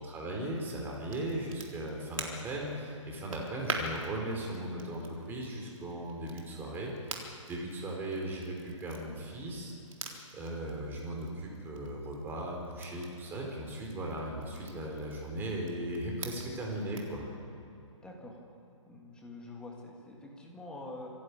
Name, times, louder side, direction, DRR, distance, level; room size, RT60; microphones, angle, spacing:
voice 1, 0.0-9.7 10.3-17.3, right 1 dB, 10° right, -1 dB, 4.3 m, -37 dB
Crackle, 0.5-17.2, right 3 dB, 85° right, 3.9 m, -46 dB
voice 2, 18.0-18.4 18.9-21.1, left 2 dB, 5° left, -1 dB, 2.7 m, -46 dB
26.5 x 11.5 x 8.5 m, 2.9 s
hypercardioid pair, 150°, 17 cm